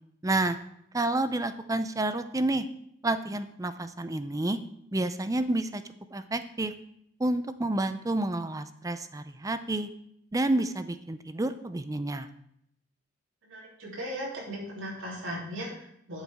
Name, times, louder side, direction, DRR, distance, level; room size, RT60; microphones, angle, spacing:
voice 1, 0.2-0.6 0.9-2.7 3.0-4.6 4.9-5.8 6.1-6.7 7.2-9.9 10.3-12.3, right 2 dB, 20° right, 11 dB, 0.5 m, -29 dB
voice 2, 13.4-16.2, equal, 90° right, -4 dB, 3.4 m, -37 dB
12.0 x 7.3 x 3.6 m, 0.72 s
head